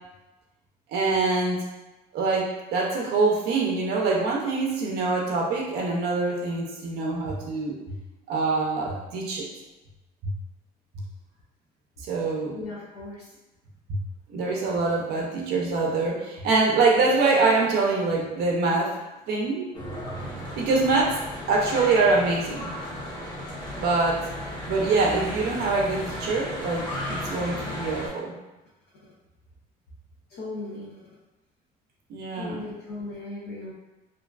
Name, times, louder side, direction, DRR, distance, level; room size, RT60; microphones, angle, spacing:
voice 1, 0.9-1.6 2.1-7.8 8.3-9.5 10.2-10.3 12.0-12.6 13.9-14.0 14.3-19.0 19.3-19.7 20.6-21.2 21.5-22.7 23.8-24.3 24.7-28.4 32.1-32.6, right 3 dB, 70° right, -1 dB, 0.5 m, -24 dB
voice 2, 12.5-13.3 30.3-31.0 32.4-33.7, left 2 dB, 70° left, -7 dB, 0.6 m, -37 dB
Church bell / Traffic noise roadway noise, 19.7-28.1, equal, 25° left, 1.0 m, -35 dB
2.6 x 2.3 x 2.3 m, 1.1 s
cardioid pair, 110°, 17 cm